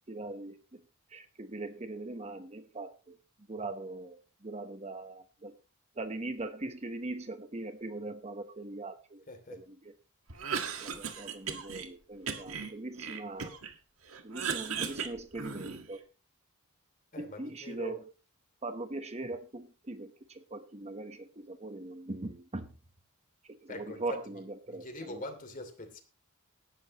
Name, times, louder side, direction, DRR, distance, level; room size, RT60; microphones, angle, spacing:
voice 1, 0.1-0.8 1.1-3.2 3.5-5.6 5.9-9.2 9.5-9.9 10.8-13.6 14.2-16.0 17.2-18.1 18.6-22.7 23.4-25.2, right 2 dB, 30° right, 9 dB, 1.0 m, -41 dB
voice 2, 9.3-9.6 17.1-18.0 23.7-24.2 24.7-26.0, left 1 dB, 40° left, 7 dB, 2.8 m, -43 dB
Cough, 10.3-11.9 12.3-13.7 14.1-16.0, right 6 dB, 70° right, 1.7 m, -37 dB
17.5 x 12.0 x 3.0 m, 0.33 s
head